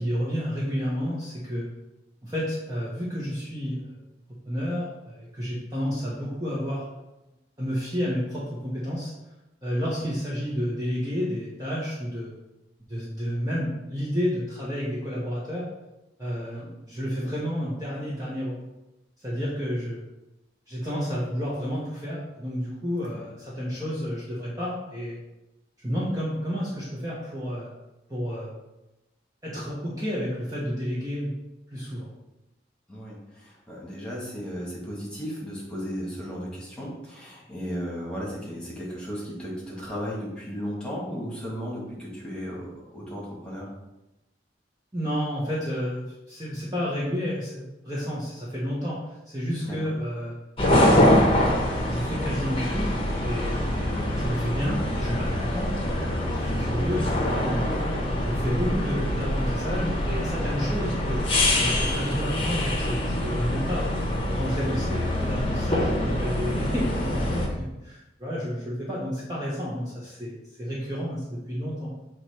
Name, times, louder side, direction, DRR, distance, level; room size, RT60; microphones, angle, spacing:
voice 1, 0.0-1.6 2.2-3.9 4.4-6.9 7.6-9.1 9.6-12.3 12.9-15.7 16.2-18.6 19.2-20.0 20.7-25.2 25.8-27.7 28.1-28.6 29.4-31.3 31.7-32.1 44.9-49.0 49.3-50.3 50.7-51.5 51.8-52.9 53.2-53.8 54.1-55.9 56.3-57.9 58.2-61.2 61.5-63.9 64.3-71.9, equal, 20° right, -8 dB, 1.2 m, -30 dB
voice 2, 16.4-16.7 23.0-23.1 32.9-43.7 49.6-49.8 53.9-54.1 64.7-64.9, equal, 5° left, -6 dB, 1.8 m, -35 dB
sound 1, 50.6-67.5, left 1 dB, 30° left, 1.0 m, -25 dB
7.3 x 3.1 x 4.4 m, 0.96 s
head